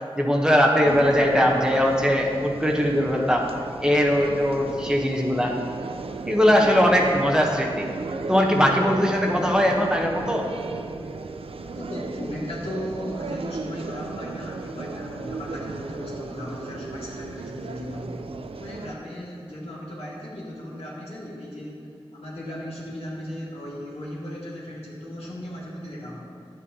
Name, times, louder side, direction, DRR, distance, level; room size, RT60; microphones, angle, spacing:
voice 1, 0.2-3.5 3.8-5.5 6.2-7.9 8.3-10.4, equal, 5° right, -1 dB, 0.9 m, -20 dB
sound 1, 0.8-18.9, right 4 dB, 70° right, 0.4 m, -35 dB
voice 2, 11.6-18.1 18.6-26.3, left 1 dB, 85° left, -6 dB, 2.0 m, -36 dB
10.0 x 7.7 x 2.8 m, 2.4 s
wide cardioid pair, 80°, 10 cm